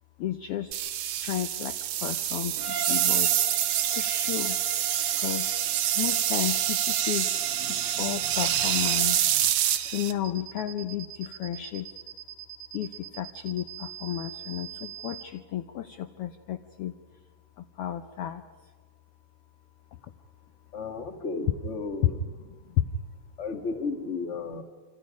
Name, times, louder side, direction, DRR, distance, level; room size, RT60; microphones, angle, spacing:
voice 1, 0.2-1.8 2.0-3.4 3.9-4.6 5.2-5.5 6.0-7.3 8.0-9.2 9.8-11.9 12.7-16.9 17.6-18.4 22.0-22.1 22.8-22.9, left 12 dB, 75° left, 7 dB, 1.4 m, -32 dB
sound 1, 0.7-10.1, right 11 dB, 85° right, 2.6 m, -26 dB
Bowed string instrument, 2.6-9.4, right 4 dB, 45° right, 2.0 m, -40 dB
sound 2, 10.2-15.2, right 11 dB, 60° right, 2.0 m, -42 dB
voice 2, 20.7-22.2 23.4-24.6, left 4 dB, 30° left, 5 dB, 1.3 m, -33 dB
27.5 x 26.5 x 5.2 m, 1.4 s
omnidirectional pair, 3.5 m